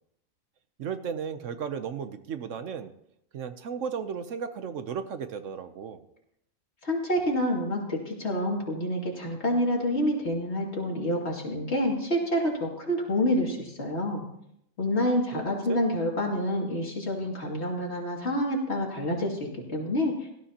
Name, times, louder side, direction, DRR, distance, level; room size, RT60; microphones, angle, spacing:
voice 1, 0.8-2.9 3.3-6.0 15.3-15.4 15.7-15.8, right 7 dB, 70° right, 10 dB, 1.1 m, -34 dB
voice 2, 6.8-14.2 14.8-20.1, left 1 dB, 50° left, -1 dB, 2.7 m, -28 dB
17.0 x 13.0 x 2.9 m, 0.76 s
omnidirectional pair, 1.4 m